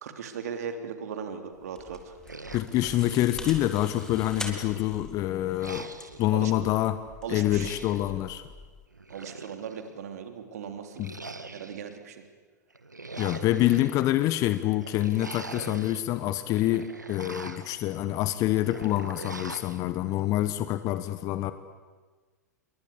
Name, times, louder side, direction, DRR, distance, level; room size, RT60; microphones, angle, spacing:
voice 1, 0.0-2.2 6.3-6.6 7.2-7.7 9.1-11.1 11.5-12.2, right 7 dB, 60° right, 7 dB, 3.5 m, -38 dB
sound 1, 1.5-8.9, left 2 dB, 5° left, 4.0 m, -44 dB
sound 2, 2.2-3.4 3.8-5.0 5.6-6.3 7.4-8.1 8.9-9.9 10.9-12.0 12.7-13.9 14.8-16.0 16.4-17.8 18.6-19.8, right 3 dB, 85° right, 1.8 m, -42 dB
voice 2, 2.5-5.9 6.2-7.0 7.3-8.4 11.0-11.1 13.2-21.5, left 14 dB, 35° left, 12 dB, 1.2 m, -26 dB
28.0 x 23.0 x 8.5 m, 1.4 s
figure-of-eight pair, 95°, 9 cm